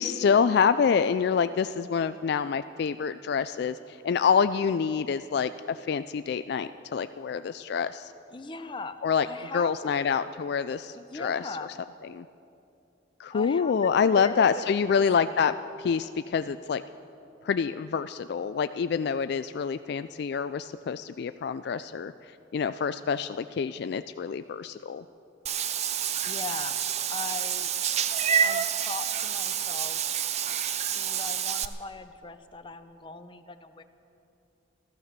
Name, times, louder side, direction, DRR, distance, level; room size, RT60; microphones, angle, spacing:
voice 1, 0.0-8.1 9.0-9.3 9.5-11.6 12.1-12.3 13.2-15.5 15.8-16.8 17.4-22.1 22.5-25.0, left 6 dB, 55° left, 12 dB, 0.3 m, -26 dB
voice 2, 8.3-10.1 10.9-11.7 13.3-15.0 15.3-15.4 26.2-26.8 27.1-27.7 28.4-30.0 30.9-33.8, left 3 dB, 25° left, 8 dB, 0.6 m, -40 dB
Meow / Water / Bathtub (filling or washing), 25.5-31.7, right 8 dB, 35° right, 0.5 m, -28 dB
15.0 x 14.0 x 6.6 m, 2.7 s
head